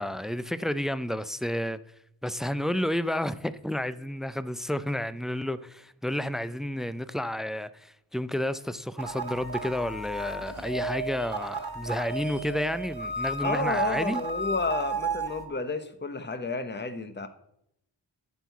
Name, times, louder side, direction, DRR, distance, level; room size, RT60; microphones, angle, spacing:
voice 1, 0.0-1.8 2.2-14.2, left 1 dB, ahead, 0.3 m, -31 dB
sound 1, 9.0-15.4, right 3 dB, 55° right, 1.3 m, -33 dB
voice 2, 13.4-17.3, left 3 dB, 25° left, 0.8 m, -31 dB
11.5 x 4.7 x 8.1 m
wide cardioid pair, 105°, 44 cm